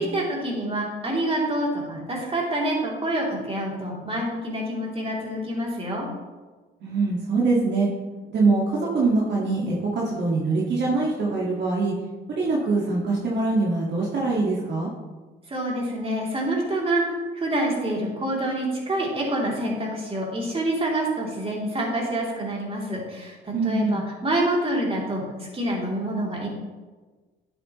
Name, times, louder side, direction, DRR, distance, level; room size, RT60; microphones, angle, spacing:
voice 1, 0.0-6.1 15.5-26.5, right 1 dB, 30° right, -3 dB, 3.0 m, -27 dB
voice 2, 6.8-7.9 8.3-11.9 12.3-14.9 23.5-24.0, right 3 dB, 60° right, -4 dB, 1.8 m, -23 dB
10.5 x 7.8 x 3.1 m, 1.3 s
cardioid pair, 90°, 20 cm